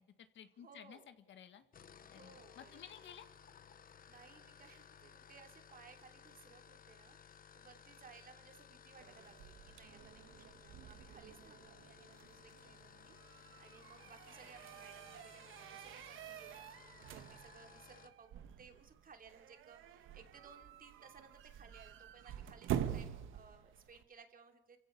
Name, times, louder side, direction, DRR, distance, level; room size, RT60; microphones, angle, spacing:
voice 1, 0.0-1.6 2.1-3.3, left 9 dB, 70° left, 10 dB, 1.8 m, -55 dB
voice 2, 0.6-1.1 2.0-3.0 4.1-24.8, right 5 dB, 45° right, 5 dB, 3.1 m, -61 dB
sound 1, 1.6-18.2, left 7 dB, 45° left, 1.0 m, -59 dB
sound 2, 9.0-24.0, right 10 dB, 85° right, 1.4 m, -47 dB
27.5 x 15.5 x 6.8 m, 0.92 s
cardioid pair, 90°, 20 cm